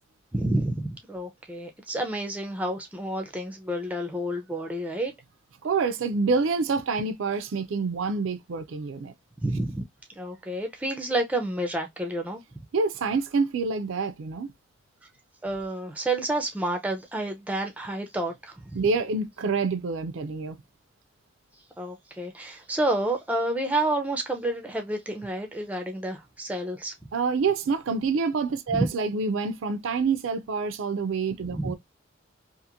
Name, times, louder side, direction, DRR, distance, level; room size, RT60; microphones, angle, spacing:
voice 1, 0.3-5.1 9.4-9.8 10.2-12.4 15.4-18.8 21.8-26.9 28.7-28.9 31.5-31.7, right 1 dB, 5° right, 0.4 m, -29 dB
voice 2, 5.6-9.1 12.7-14.5 18.7-20.6 27.1-31.7, right 4 dB, 70° right, 0.4 m, -27 dB
2.8 x 2.5 x 2.4 m
head